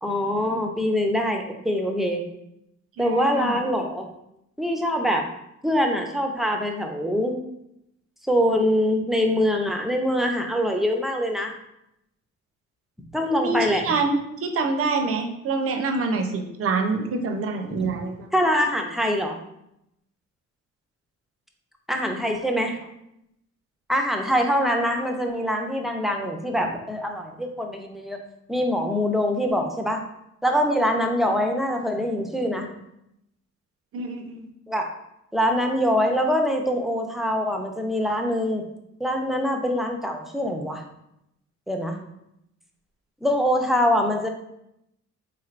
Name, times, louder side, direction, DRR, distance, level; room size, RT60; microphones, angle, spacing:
voice 1, 0.0-2.2 3.0-4.1 4.6-5.3 5.6-7.4 8.2-11.5 13.1-13.9 17.7-17.8 18.3-19.4 21.9-22.8 23.9-28.2 28.5-30.0 30.4-32.7 34.7-34.9 35.3-38.6 39.0-40.8 41.7-42.0 43.2-44.3, equal, ahead, 2 dB, 0.5 m, -24 dB
voice 2, 3.0-3.6 13.3-18.3 33.9-34.5, right 3 dB, 50° right, 4 dB, 0.6 m, -26 dB
3.7 x 3.3 x 2.4 m, 0.81 s
cardioid pair, 90°, 30 cm